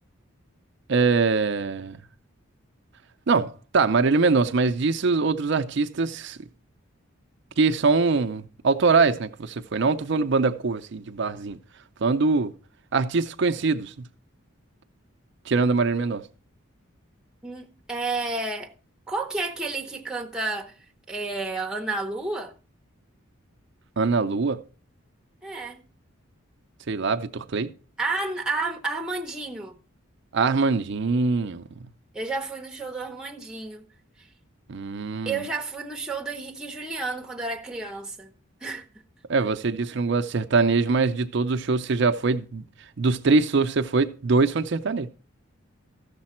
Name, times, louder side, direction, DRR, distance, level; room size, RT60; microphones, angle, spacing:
voice 1, 0.9-2.0 3.3-6.4 7.6-11.6 12.0-12.5 12.9-13.9 15.5-16.2 24.0-24.6 26.9-27.7 30.3-31.6 34.7-35.4 39.3-42.6 43.0-45.1, right 4 dB, 55° right, 0.5 m, -23 dB
voice 2, 17.4-18.7 19.1-20.7 21.1-22.5 25.4-25.8 28.0-29.7 32.1-33.9 35.3-38.3 38.6-38.9, right 3 dB, 5° right, 0.8 m, -31 dB
14.0 x 6.7 x 4.3 m
head